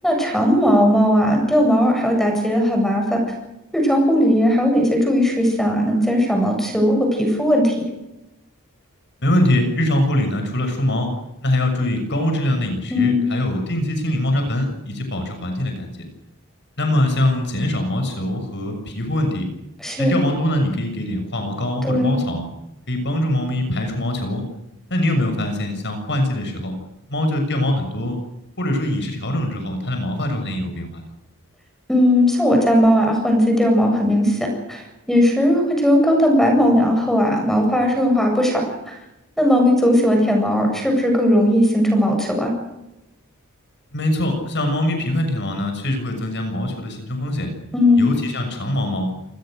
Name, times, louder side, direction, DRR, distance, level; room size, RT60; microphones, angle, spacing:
voice 1, 0.0-3.2 3.7-7.8 12.9-13.2 19.8-20.1 21.8-22.2 31.9-34.8 35.1-39.0 39.4-42.5 47.7-48.0, equal, ahead, 2 dB, 7.8 m, -17 dB
voice 2, 9.2-11.1 11.4-16.0 16.8-19.5 20.0-22.5 22.9-24.4 24.9-26.7 27.1-28.2 28.6-31.0 43.9-47.5 48.0-49.1, left 1 dB, 55° left, 5 dB, 6.9 m, -23 dB
29.5 x 21.0 x 6.6 m, 0.91 s
head